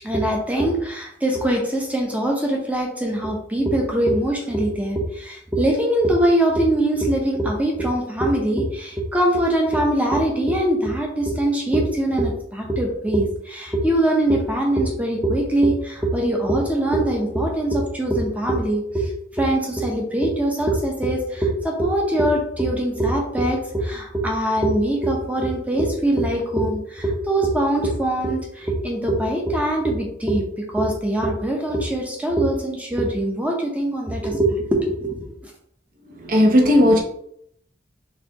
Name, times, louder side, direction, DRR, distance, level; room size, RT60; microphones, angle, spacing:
voice 1, 0.0-35.5, right 1 dB, 10° right, 0 dB, 0.8 m, -22 dB
voice 2, 36.1-37.0, left 1 dB, 50° right, 0 dB, 0.8 m, -15 dB
4.2 x 3.5 x 2.9 m, 0.73 s
head